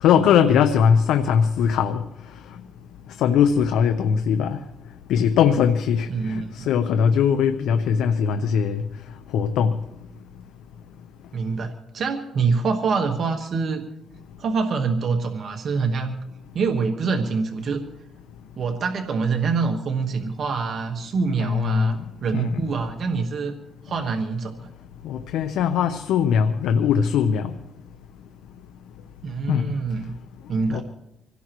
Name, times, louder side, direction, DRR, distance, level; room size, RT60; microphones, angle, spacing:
voice 1, 0.0-2.0 3.2-4.6 5.1-8.8 9.3-9.7 21.4-22.0 22.3-22.6 25.0-27.5 29.5-29.7 30.7-30.8, left 7 dB, 85° left, 0.8 m, -20 dB
voice 2, 6.1-6.7 11.3-13.8 14.4-16.1 16.5-17.9 18.6-23.6 23.8-24.7 29.2-30.1 30.5-30.8, right 4 dB, 55° right, 1.4 m, -25 dB
26.0 x 17.0 x 3.1 m
cardioid pair, 90°, 0 cm